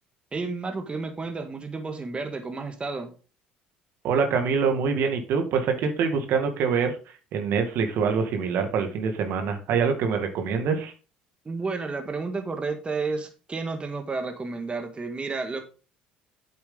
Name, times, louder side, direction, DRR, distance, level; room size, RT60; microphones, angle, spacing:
voice 1, 0.3-3.1 11.4-15.6, right 4 dB, 25° right, 5 dB, 1.7 m, -31 dB
voice 2, 4.0-7.0 7.3-10.9, right 5 dB, 60° right, 5 dB, 2.0 m, -25 dB
8.5 x 7.7 x 3.8 m, 0.36 s
hypercardioid pair, 70°, 4 cm